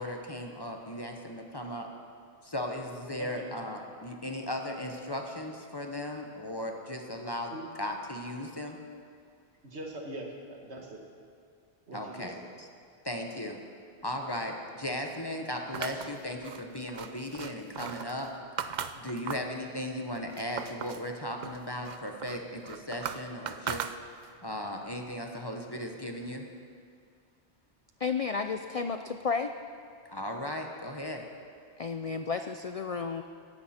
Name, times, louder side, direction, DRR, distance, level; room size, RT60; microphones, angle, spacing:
voice 1, 0.0-1.9 2.4-8.8 11.9-12.7 13.0-13.6 14.0-18.3 18.9-23.8 24.4-26.5 30.1-31.2, left 1 dB, 25° left, 3 dB, 1.0 m, -37 dB
voice 2, 3.2-3.5 7.5-7.6 9.6-11.0 11.9-12.5, right 1 dB, 75° right, 0 dB, 2.0 m, -42 dB
sound 1, 15.7-19.6 20.0-21.1 21.4-24.4, right 7 dB, 55° right, 0.6 m, -39 dB
voice 3, 28.0-29.5 31.8-33.2, left 5 dB, 50° left, 7 dB, 0.4 m, -32 dB
16.5 x 12.5 x 4.3 m, 2.2 s
omnidirectional pair, 1.1 m